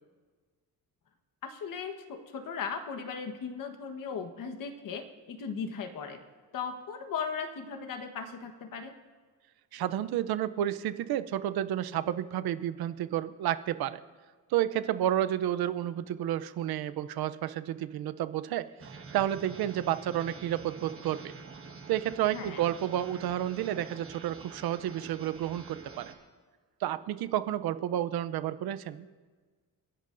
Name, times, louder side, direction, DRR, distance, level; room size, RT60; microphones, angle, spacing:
voice 1, 1.4-6.2 6.5-8.9 22.3-22.6, left 6 dB, 60° left, 6 dB, 1.3 m, -37 dB
voice 2, 9.7-14.0 14.5-18.7 19.1-21.3 21.9-26.1 26.8-29.1, right 12 dB, 80° right, 13 dB, 0.7 m, -31 dB
sound 1, 18.8-26.1, right 4 dB, 35° right, 1.5 m, -47 dB
30.0 x 11.0 x 2.6 m, 1.5 s
cardioid pair, 135°, 37 cm